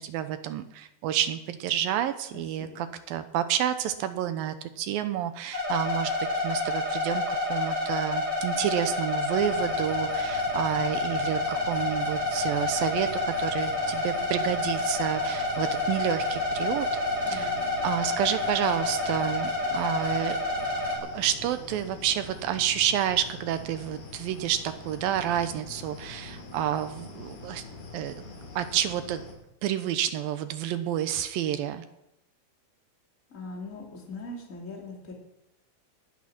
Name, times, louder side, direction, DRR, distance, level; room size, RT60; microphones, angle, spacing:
voice 1, 0.0-6.1 6.4-16.9 17.3-17.5 17.8-20.4 21.1-27.6 27.9-28.1 28.6-29.2 29.6-31.8, right 11 dB, 75° right, 10 dB, 2.4 m, -29 dB
sound 1, 5.5-21.0, left 2 dB, 20° right, 6.6 m, -29 dB
sound 2, 9.4-29.3, left 3 dB, 85° left, 5.1 m, -44 dB
voice 2, 17.2-17.6 33.3-35.1, left 2 dB, 20° left, -1 dB, 2.9 m, -40 dB
20.0 x 8.9 x 5.9 m, 0.87 s
omnidirectional pair, 4.5 m